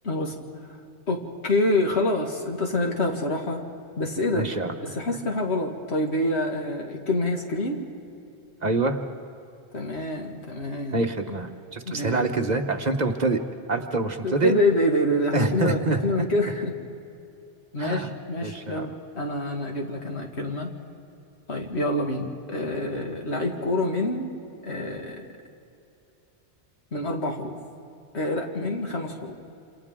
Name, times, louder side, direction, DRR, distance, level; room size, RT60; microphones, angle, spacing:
voice 1, 0.0-0.4 1.1-3.6 4.0-4.5 4.8-7.8 9.7-11.0 11.9-12.3 14.2-16.8 17.7-20.7 21.5-24.3 24.6-25.2 26.9-27.6 28.1-29.3, left 1 dB, 85° left, 1 dB, 2.3 m, -26 dB
voice 2, 4.3-5.0 8.6-9.0 10.9-13.4 13.7-14.5 15.3-16.0 17.8-18.1 18.4-18.9, right 3 dB, 40° right, 5 dB, 1.2 m, -26 dB
28.0 x 27.5 x 3.7 m, 2.8 s
omnidirectional pair, 1.1 m